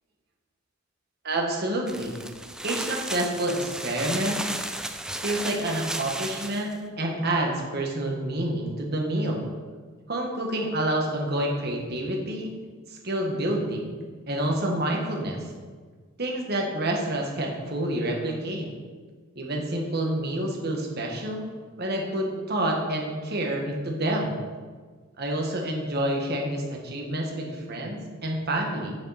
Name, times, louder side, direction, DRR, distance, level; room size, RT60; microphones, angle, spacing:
voice 1, 1.2-2.2 2.6-4.4 5.2-9.5 10.1-12.5 12.9-13.9 14.3-15.4 16.2-18.7 19.3-21.4 21.8-24.4 25.2-29.0, right 1 dB, 50° right, 0 dB, 1.5 m, -28 dB
sound 1, 1.9-6.7, right 1 dB, 5° right, 0.3 m, -34 dB
8.8 x 7.3 x 4.2 m, 1.5 s
head